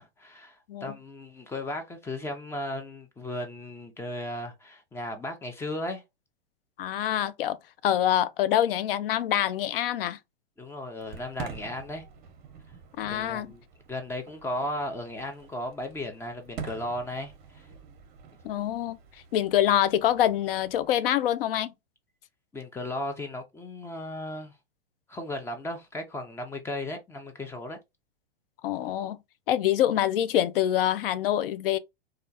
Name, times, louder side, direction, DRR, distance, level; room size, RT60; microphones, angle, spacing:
voice 1, 0.0-6.0 10.6-12.1 13.1-13.6 13.9-17.7 22.5-24.6 25.1-27.8, left 1 dB, 10° left, 0.5 m, -35 dB
voice 2, 6.8-7.6 7.8-10.2 13.0-13.5 18.4-19.0 19.3-21.7 28.6-29.2 29.5-31.8, left 11 dB, 70° left, 0.5 m, -25 dB
Fireworks, 11.0-20.9, right 6 dB, 30° right, 0.8 m, -46 dB
3.3 x 2.4 x 2.6 m
hypercardioid pair, 130°, 29 cm